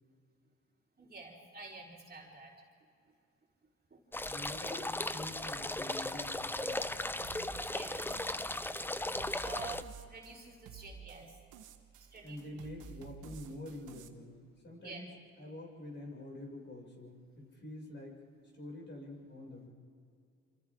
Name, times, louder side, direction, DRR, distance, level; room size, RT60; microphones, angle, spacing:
voice 1, 1.0-2.5 3.9-4.0 7.7-8.1 9.0-11.4 12.0-12.4 14.8-15.0, right 4 dB, 30° right, -2 dB, 4.1 m, -49 dB
sound 1, 4.1-9.8, left 1 dB, 5° left, 0.6 m, -37 dB
voice 2, 4.3-6.9 12.2-15.1 15.4-18.2 18.5-19.7, left 1 dB, 35° left, -2 dB, 7.0 m, -47 dB
sound 2, 7.2-14.1, right 6 dB, 85° right, 1.4 m, -52 dB
27.0 x 27.0 x 3.9 m, 2.5 s
cardioid pair, 90°, 30 cm